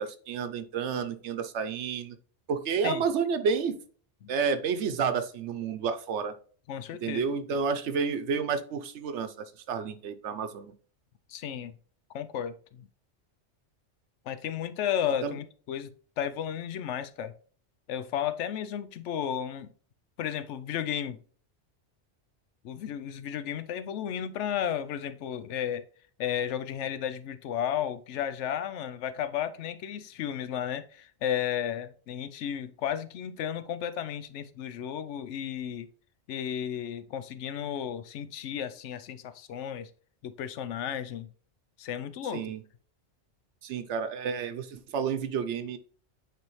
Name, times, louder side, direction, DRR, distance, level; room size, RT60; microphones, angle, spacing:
voice 1, 0.0-2.1 2.5-3.8 4.3-6.3 7.0-10.7 15.2-15.3 42.3-42.6 43.6-45.8, right 6 dB, 75° right, 1.0 m, -30 dB
voice 2, 6.7-7.3 11.3-11.7 12.1-12.9 14.3-17.3 17.9-19.7 20.2-21.2 22.6-25.8 26.2-35.9 36.3-39.9 40.2-41.3 41.8-42.5, left 9 dB, 80° left, 0.9 m, -33 dB
9.1 x 3.4 x 3.1 m
omnidirectional pair, 1.2 m